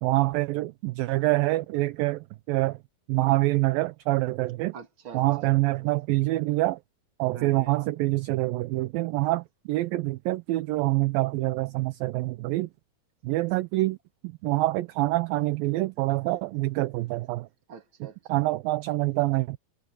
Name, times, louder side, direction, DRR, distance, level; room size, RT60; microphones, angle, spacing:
voice 1, 0.0-2.8 3.1-4.7 5.1-6.8 7.2-12.7 13.2-14.0 14.4-17.5 18.3-19.6, right 19 dB, 80° right, 2.3 m, -26 dB
voice 2, 4.7-5.6 7.3-7.8 17.7-18.5, right 5 dB, 35° right, 2.9 m, -45 dB
omnidirectional pair, 4.4 m